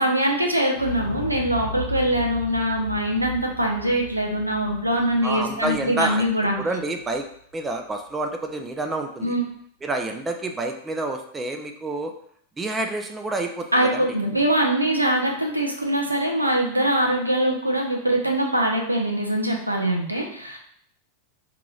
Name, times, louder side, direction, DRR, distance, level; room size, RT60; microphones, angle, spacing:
voice 1, 0.0-6.6 9.2-9.4 13.7-20.6, right 1 dB, 85° right, 1 dB, 0.6 m, -23 dB
Explosion, 0.7-6.8 7.1-7.2, left 5 dB, 70° left, 0.8 m, -36 dB
voice 2, 5.2-6.3 6.6-7.2 7.5-9.3 9.8-12.1 12.6-14.0, right 2 dB, 15° right, 4 dB, 0.4 m, -28 dB
4.7 x 2.9 x 2.4 m, 0.64 s
figure-of-eight pair, 90°, 0 cm